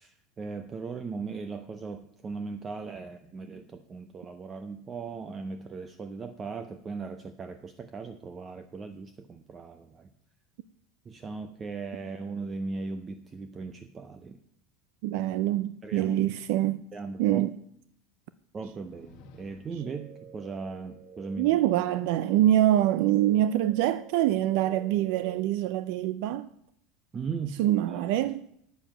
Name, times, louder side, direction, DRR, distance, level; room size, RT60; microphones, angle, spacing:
voice 1, 0.0-10.1 11.1-14.4 15.8-16.2 16.9-17.5 18.5-21.6 27.1-27.6 27.9-28.0, right 4 dB, 20° right, 0.6 m, -38 dB
voice 2, 15.0-16.8 17.2-17.5 21.4-26.5 27.6-28.4, right 13 dB, 65° right, 0.4 m, -25 dB
sound 1, 18.7-20.0, left 4 dB, 55° left, 1.2 m, -54 dB
sound 2, 19.8-25.4, right 6 dB, 90° right, 3.9 m, -49 dB
9.0 x 6.9 x 7.5 m
supercardioid pair, 140°, 0 cm